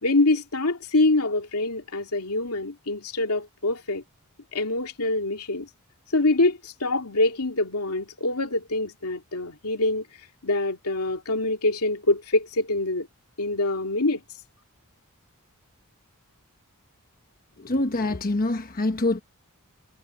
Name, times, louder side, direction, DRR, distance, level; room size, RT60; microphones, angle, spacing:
voice 1, 0.0-4.0 4.5-5.7 6.1-10.1 10.4-13.1 13.4-14.2, left 2 dB, 90° left, 2.7 m, -25 dB
voice 2, 17.6-19.2, left 2 dB, 40° left, 1.1 m, -25 dB
head